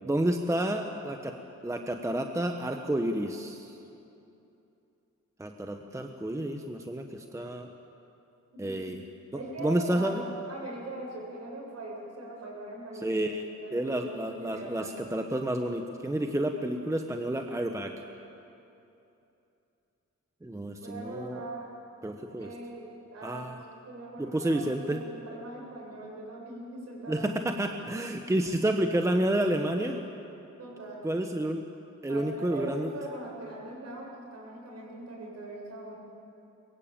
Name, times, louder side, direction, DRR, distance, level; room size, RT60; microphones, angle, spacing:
voice 1, 0.0-1.3 1.6-3.7 5.4-7.7 8.6-9.0 9.6-10.2 13.0-13.5 13.7-17.9 20.4-21.4 22.0-22.5 23.2-23.6 24.2-25.0 27.1-30.0 31.0-31.6 32.0-32.9, right 1 dB, 10° right, 4 dB, 1.1 m, -30 dB
voice 2, 9.3-10.2 10.5-13.2 13.6-15.0 20.8-21.6 22.4-22.8 23.1-23.6 23.8-27.3 27.7-27.8 30.6-31.0 32.1-36.0, right 2 dB, 55° right, -2 dB, 7.7 m, -41 dB
23.0 x 22.0 x 8.9 m, 2.8 s
wide cardioid pair, 155°, 30 cm